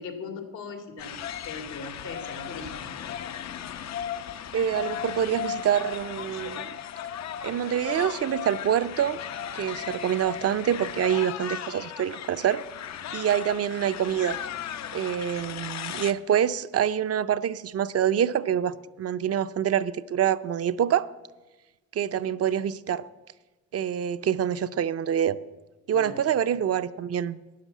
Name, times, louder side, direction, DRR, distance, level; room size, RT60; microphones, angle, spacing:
voice 1, 0.0-3.0 25.9-26.2, left 4 dB, 85° left, 2.6 m, -39 dB
sound 1, 1.0-16.1, left 9 dB, 65° left, 0.8 m, -36 dB
voice 2, 4.5-6.8 7.4-9.2 9.5-12.6 13.1-14.4 14.9-21.1 21.9-23.0 23.7-25.4 25.9-27.4, right 9 dB, 55° right, 0.6 m, -26 dB
12.5 x 9.4 x 7.3 m
cardioid pair, 90°, 30 cm